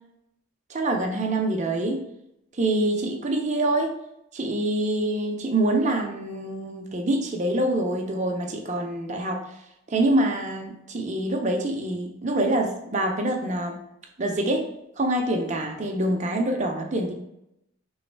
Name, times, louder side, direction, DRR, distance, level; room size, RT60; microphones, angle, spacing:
voice 1, 0.7-2.1 2.5-4.0 4.3-9.4 9.9-13.8 14.2-14.7 15.0-17.1, right 1 dB, 35° right, 2 dB, 0.6 m, -25 dB
3.4 x 3.1 x 4.5 m, 0.82 s
head